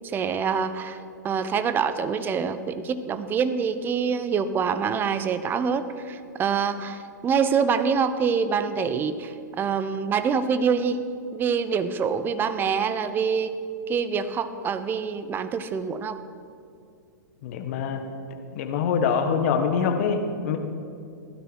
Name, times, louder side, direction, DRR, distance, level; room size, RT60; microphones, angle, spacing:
voice 1, 0.1-1.0 1.2-11.0 11.3-13.5 13.9-16.2, right 6 dB, 20° right, 11 dB, 0.7 m, -25 dB
voice 2, 17.4-18.0 18.5-20.6, left 6 dB, 45° left, 6 dB, 1.4 m, -24 dB
16.0 x 12.0 x 4.7 m, 2.4 s
figure-of-eight pair, 105°, 10 cm